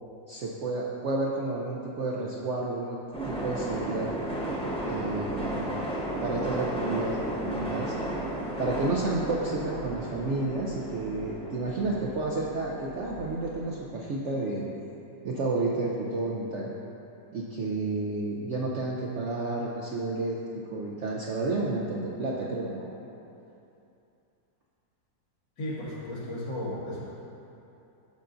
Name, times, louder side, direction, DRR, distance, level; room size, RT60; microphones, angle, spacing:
voice 1, 0.3-3.0 3.2-4.1 4.8-5.6 6.2-7.9 8.6-14.6 15.2-16.7 17.3-20.4 20.7-22.9, right 2 dB, 70° right, -4 dB, 0.6 m, -31 dB
sound 1, 3.1-13.8, right 1 dB, 5° left, 0.9 m, -34 dB
voice 2, 25.6-27.0, left 1 dB, 90° left, -8 dB, 2.5 m, -34 dB
10.5 x 6.7 x 2.6 m, 2.8 s
omnidirectional pair, 2.0 m